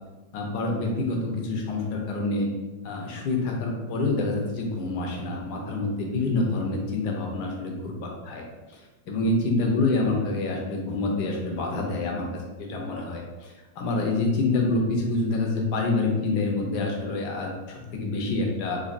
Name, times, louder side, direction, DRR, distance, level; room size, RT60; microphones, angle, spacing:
voice 1, 0.3-2.5 2.8-8.4 8.7-8.8 9.1-18.8, left 2 dB, 70° left, 0 dB, 1.1 m, -27 dB
4.0 x 2.8 x 2.5 m, 1.1 s
omnidirectional pair, 2.1 m